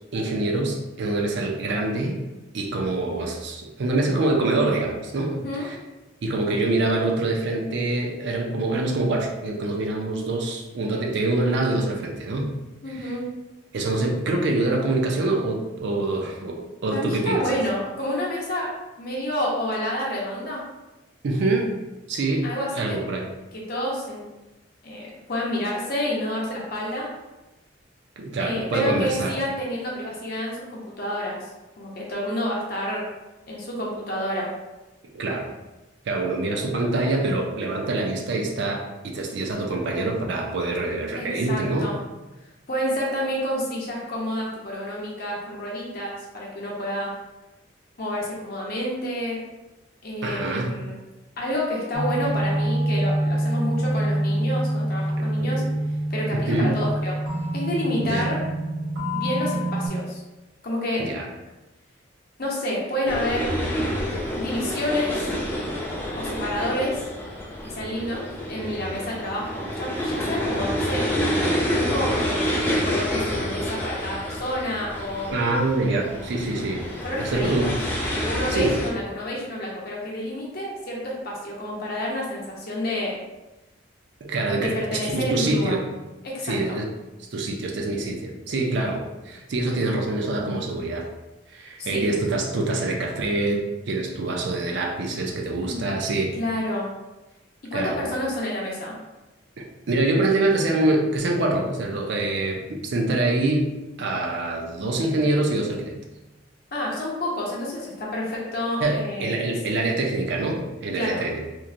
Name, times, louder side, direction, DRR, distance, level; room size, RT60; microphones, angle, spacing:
voice 1, 0.1-2.2 2.5-5.8 6.2-12.5 12.9-13.1 13.7-17.5 21.2-21.8 22.1-22.5 22.7-23.3 28.2-29.4 35.1-35.5 36.1-41.9 50.2-50.8 55.4-55.7 56.3-56.8 58.0-58.3 61.0-61.3 75.3-76.9 77.2-77.8 78.5-78.8 84.2-85.8 86.4-86.9 87.3-91.1 91.5-96.4 97.7-98.0 99.6-103.7 104.0-105.9 108.8-111.4, right 2 dB, 60° right, 1 dB, 0.4 m, -25 dB
voice 2, 5.3-5.7 12.8-13.3 16.9-18.7 19.0-20.6 22.4-23.0 23.5-24.2 24.8-27.1 28.4-31.5 31.8-33.0 33.5-34.5 41.2-42.0 42.7-47.1 48.0-49.5 50.0-51.0 51.4-55.6 56.1-57.2 57.5-58.4 59.1-60.2 60.6-61.0 62.4-63.5 64.4-65.3 66.1-67.0 67.6-68.2 68.5-71.0 71.7-75.3 77.0-77.7 78.2-83.1 84.6-85.8 86.2-86.8 91.8-92.0 95.6-95.8 96.4-96.9 97.7-99.0 106.7-109.5 110.9-111.2, left 1 dB, 50° left, -3 dB, 0.7 m, -29 dB
sound 1, 51.9-59.9, right 1 dB, 80° right, 1.2 m, -26 dB
sound 2, 63.1-78.9, equal, 10° left, 0.4 m, -28 dB
3.0 x 2.1 x 2.5 m, 1.1 s
head